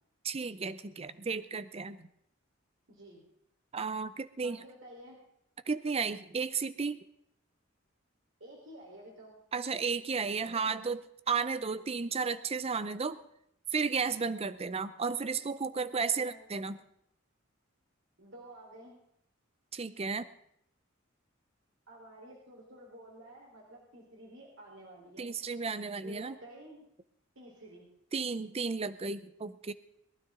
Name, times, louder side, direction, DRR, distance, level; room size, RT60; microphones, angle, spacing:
voice 1, 0.2-2.1 3.7-4.6 5.7-7.0 9.5-11.0 11.3-13.2 13.7-16.8 19.7-20.3 25.2-26.4 28.1-29.7, right 5 dB, 30° right, 14 dB, 0.5 m, -33 dB
voice 2, 2.9-3.2 4.4-5.2 8.4-9.4 10.4-10.9 15.9-16.4 18.2-19.0 21.9-25.3 26.0-26.8 27.4-27.9, right 1 dB, 70° right, -3 dB, 4.0 m, -51 dB
22.0 x 12.5 x 3.8 m, 0.75 s
head